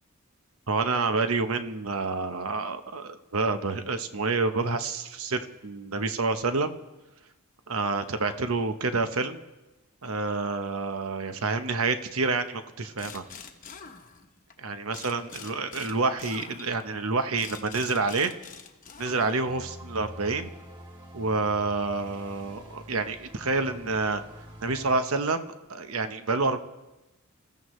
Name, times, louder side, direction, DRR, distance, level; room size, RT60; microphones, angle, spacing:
voice 1, 0.7-6.7 7.7-9.4 10.0-13.2 14.6-18.3 19.0-20.5 21.1-24.2 24.6-26.6, right 3 dB, 75° right, 8 dB, 1.0 m, -28 dB
sound 1, 13.0-14.5 14.9-19.6, left 6 dB, 35° left, 1.0 m, -45 dB
sound 2, 19.4-25.0, equal, 20° right, 2.5 m, -46 dB
28.5 x 15.0 x 3.2 m, 1.1 s
head